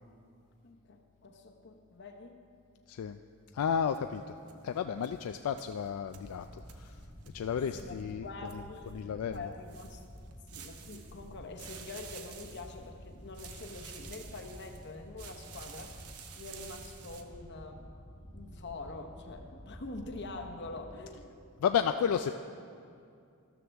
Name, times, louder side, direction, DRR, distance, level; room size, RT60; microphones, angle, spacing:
voice 1, 0.6-2.4 7.7-10.0 10.5-16.0 16.3-17.9 18.3-21.4, left 3 dB, 50° left, 4 dB, 0.9 m, -45 dB
voice 2, 3.5-4.2 4.6-7.0 7.3-9.5 21.6-22.3, left 7 dB, 75° left, 8 dB, 0.3 m, -32 dB
sound 1, 3.9-4.8 5.0-8.9 9.3-11.3 11.6-12.9 13.3-14.9 15.2-17.2, right 8 dB, 85° right, 0.8 m, -51 dB
sound 2, 6.1-21.2, equal, 35° left, 1.0 m, -51 dB
13.0 x 12.5 x 3.5 m, 2.4 s
head